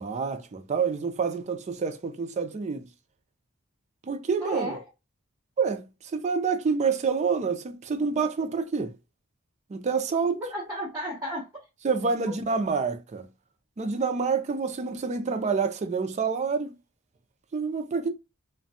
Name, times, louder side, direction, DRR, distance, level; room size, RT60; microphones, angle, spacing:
voice 1, 0.0-2.9 4.1-4.8 5.6-5.9 6.1-8.9 9.7-10.4 11.8-13.3 13.8-16.7 17.5-18.1, right 5 dB, 35° right, 0.4 m, -27 dB
voice 2, 4.4-4.8 10.4-11.5 12.3-12.4, equal, 10° right, 0.8 m, -33 dB
2.5 x 2.2 x 2.6 m
head